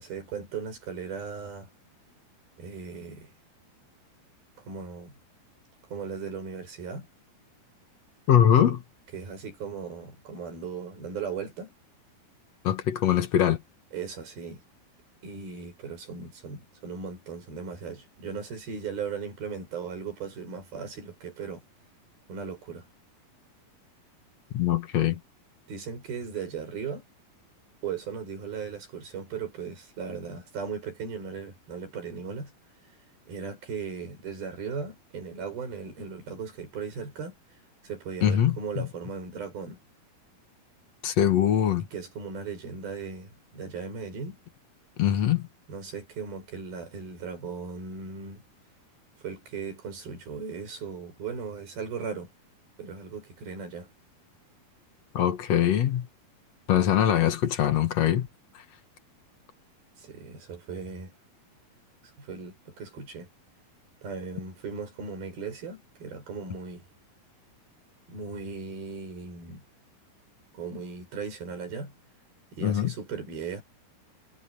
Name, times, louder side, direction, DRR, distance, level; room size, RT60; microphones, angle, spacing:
voice 1, 0.0-1.7 2.6-3.3 4.6-5.2 5.9-7.1 9.1-11.7 13.9-14.6 15.2-21.6 22.3-22.9 25.7-27.0 27.8-32.5 33.3-37.4 37.8-39.8 41.3-41.4 41.9-44.4 45.7-48.4 49.2-52.3 52.8-53.9 60.0-61.1 62.2-63.3 64.0-66.9 68.1-69.6 70.5-71.9 72.5-73.6, right 5 dB, 65° right, 8.4 m, -37 dB
voice 2, 8.3-8.8 12.6-13.6 24.5-25.2 38.2-38.9 41.0-41.9 45.0-45.5 55.1-56.1 56.7-58.3 72.6-72.9, left 10 dB, 55° left, 2.0 m, -22 dB
omnidirectional pair, 4.5 m